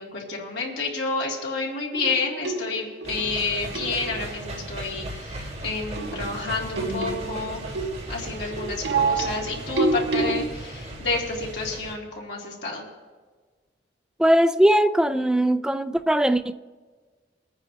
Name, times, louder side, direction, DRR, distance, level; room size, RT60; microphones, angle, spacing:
voice 1, 0.0-7.6 8.1-12.8, left 3 dB, 75° left, 2.9 m, -29 dB
sound 1, 1.9-4.4 6.0-10.5, right 3 dB, 85° right, 0.9 m, -28 dB
sound 2, 3.0-11.9, right 1 dB, 40° right, 1.9 m, -37 dB
voice 2, 14.2-16.5, right 1 dB, 5° right, 0.4 m, -20 dB
25.0 x 9.7 x 2.9 m
head